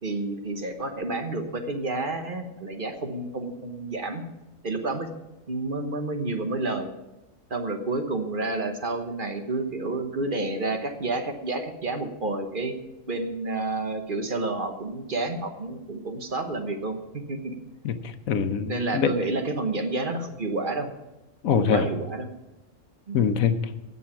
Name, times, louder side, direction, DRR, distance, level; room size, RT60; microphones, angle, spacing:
voice 1, 0.0-4.2 4.6-5.1 5.5-6.9 7.5-12.7 13.1-17.6 18.7-20.9 21.5-22.3 23.1-23.2, right 2 dB, 40° right, 5 dB, 1.2 m, -30 dB
voice 2, 17.8-19.1 21.4-21.8 23.1-23.6, left 7 dB, 85° left, 10 dB, 1.2 m, -24 dB
16.5 x 7.0 x 5.8 m, 0.98 s
omnidirectional pair, 1.4 m